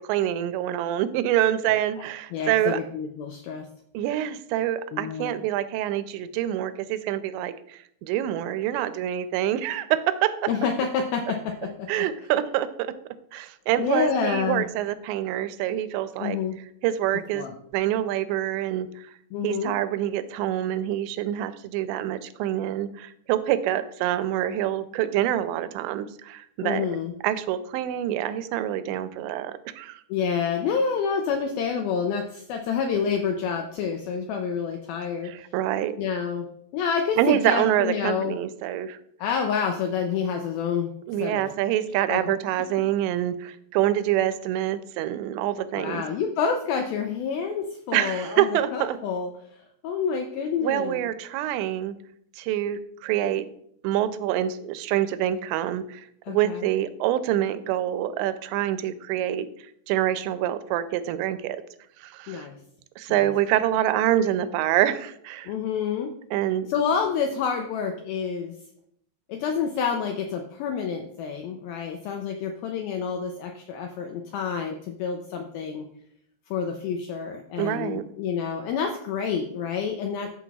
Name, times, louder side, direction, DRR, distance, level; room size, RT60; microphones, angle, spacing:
voice 1, 0.0-2.8 3.9-10.5 11.9-12.9 13.3-16.4 16.8-17.5 17.7-19.1 19.4-26.9 27.2-30.0 35.2-36.0 37.2-39.0 41.1-46.0 47.9-49.0 50.6-52.0 52.4-53.5 53.8-59.5 59.9-61.6 62.0-62.5 63.0-65.5 66.3-66.7 77.6-78.1, right 12 dB, 85° right, 12 dB, 2.8 m, -26 dB
voice 2, 2.3-3.7 4.9-5.4 10.5-12.1 13.8-14.7 16.2-16.6 17.3-17.5 19.3-19.7 26.6-27.1 30.1-35.3 36.0-36.5 36.7-38.4 39.2-40.9 41.2-41.4 42.1-42.4 45.7-51.0 56.3-56.7 62.3-62.6 63.1-63.2 65.5-66.1 66.7-68.6 69.3-75.8 76.5-80.3, left 6 dB, 90° left, 4 dB, 2.1 m, -28 dB
13.0 x 5.9 x 2.3 m, 0.69 s
omnidirectional pair, 5.0 m